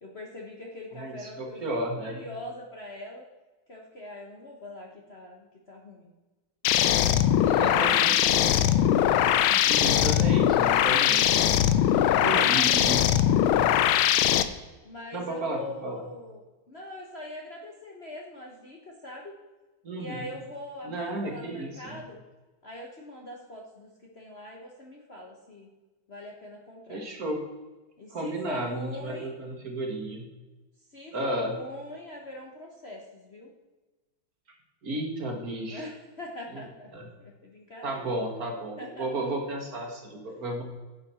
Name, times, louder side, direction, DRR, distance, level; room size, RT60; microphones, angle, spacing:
voice 1, 0.0-3.2 3.7-6.1 8.2-8.3 9.4-9.7 12.1-12.8 14.8-19.3 19.9-22.2 22.6-25.7 26.1-27.0 28.0-29.4 30.9-33.5 35.7-38.1 38.8-39.3, left 1 dB, 40° left, 0 dB, 1.1 m, -42 dB
voice 2, 0.9-2.2 7.4-8.2 9.2-11.5 11.9-13.2 13.4-13.8 15.1-16.0 19.8-20.3 20.8-22.0 26.9-27.4 28.1-30.3 31.1-31.5 34.8-35.9 36.5-36.6 36.9-37.0 37.8-40.6, right 1 dB, 50° right, 2 dB, 1.8 m, -33 dB
sound 1, 6.6-14.4, left 11 dB, 90° left, 1.4 m, -21 dB
10.5 x 6.9 x 4.3 m, 1.2 s
omnidirectional pair, 2.3 m